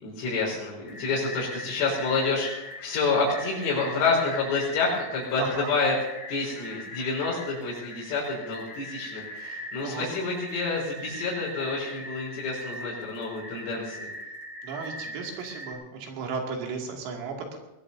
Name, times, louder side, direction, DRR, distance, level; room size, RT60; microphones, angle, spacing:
voice 1, 0.0-5.9 6.3-14.1, left 4 dB, 70° left, -8 dB, 6.7 m, -28 dB
sound 1, 0.8-15.7, left 1 dB, 35° left, 3.4 m, -41 dB
voice 2, 5.4-5.7 9.8-10.1 14.6-17.6, right 4 dB, 85° right, 0 dB, 5.3 m, -34 dB
21.0 x 21.0 x 2.8 m, 1.0 s
omnidirectional pair, 6.0 m